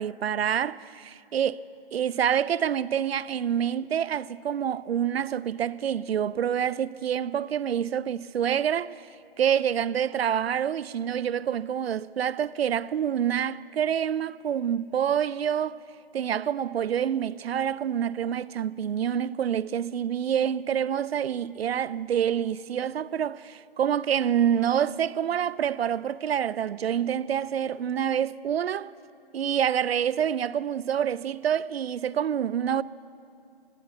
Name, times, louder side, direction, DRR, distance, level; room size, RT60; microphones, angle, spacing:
voice 1, 0.0-1.6 1.9-9.1 9.4-15.8 16.1-28.9 29.3-32.8, right 9 dB, 85° right, 0.5 m, -27 dB
16.5 x 12.0 x 6.7 m
hypercardioid pair, 175°, 30 cm